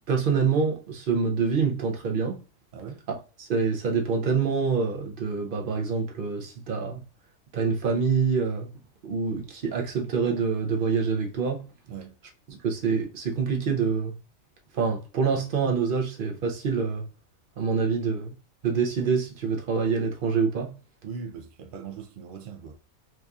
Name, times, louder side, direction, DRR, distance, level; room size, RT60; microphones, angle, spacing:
voice 1, 0.1-2.4 3.4-7.0 7.5-8.7 9.0-11.6 12.5-14.1 14.7-17.0 17.6-18.3 18.6-20.7, right 5 dB, 50° right, 0.8 m, -26 dB
voice 2, 21.0-22.7, right 6 dB, 75° right, 0.4 m, -39 dB
4.5 x 2.6 x 2.4 m
omnidirectional pair, 1.4 m